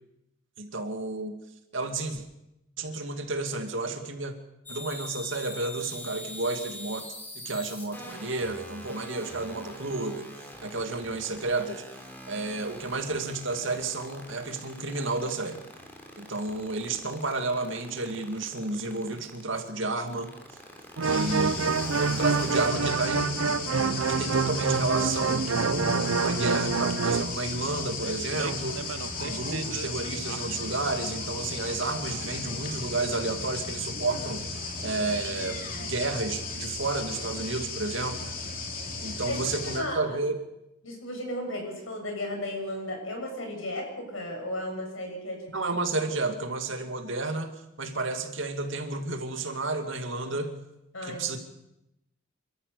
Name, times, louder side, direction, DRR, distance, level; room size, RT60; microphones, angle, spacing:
voice 1, 0.6-1.4 1.7-2.2 2.8-4.3 4.7-7.1 7.4-10.3 10.6-11.8 12.3-15.6 16.2-20.3 21.0-21.8 22.0-23.3 24.1-28.8 29.2-38.3 39.0-40.3 45.5-47.5 47.8-50.6 51.0-51.4, right 3 dB, 70° right, 6 dB, 2.4 m, -31 dB
sound 1, 4.7-19.7 20.1-22.7, left 1 dB, 10° left, 3.5 m, -43 dB
sound 2, 21.0-39.8, left 3 dB, 45° left, 3.2 m, -35 dB
sound 3, 21.0-27.4 28.0-29.9 30.3-30.7, right 5 dB, 90° right, 0.6 m, -27 dB
voice 2, 39.3-40.2 40.8-45.7 50.9-51.4, left 1 dB, 75° left, 2 dB, 7.7 m, -35 dB
28.0 x 13.5 x 6.8 m, 0.87 s
head